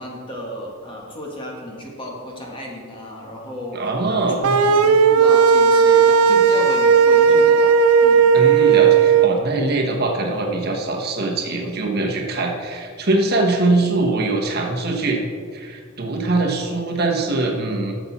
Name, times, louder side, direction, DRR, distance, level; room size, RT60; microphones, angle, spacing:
voice 1, 0.0-8.3 13.7-13.9, equal, 25° left, -2 dB, 1.6 m, -34 dB
voice 2, 3.7-4.6 8.3-15.2 15.5-17.9, right 2 dB, 45° right, 1 dB, 1.1 m, -22 dB
sound 1, 4.4-9.3, right 6 dB, 85° right, 0.5 m, -14 dB
13.0 x 7.1 x 4.1 m, 2.1 s
head